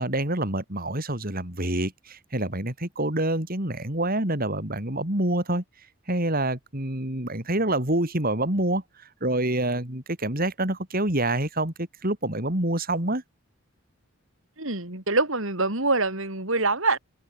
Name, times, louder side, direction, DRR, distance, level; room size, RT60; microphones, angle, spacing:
voice 1, 0.0-5.6 6.1-13.2, right 1 dB, 40° right, 3.9 m, -27 dB
voice 2, 14.6-17.0, right 3 dB, 60° right, 4.7 m, -25 dB
head